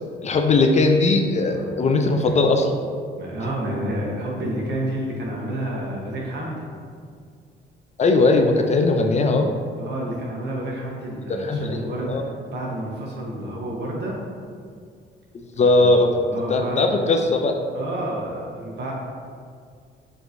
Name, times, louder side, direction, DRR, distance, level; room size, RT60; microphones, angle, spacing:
voice 1, 0.2-2.8 8.0-9.5 11.3-11.8 12.1-12.2 15.6-16.1 16.5-17.5, left 3 dB, 35° left, 4 dB, 0.4 m, -19 dB
voice 2, 3.2-6.6 9.8-14.2 15.6-16.8 17.7-18.9, right 1 dB, 60° right, -2 dB, 1.0 m, -30 dB
5.1 x 3.0 x 2.6 m, 2.1 s
cardioid pair, 90°, 20 cm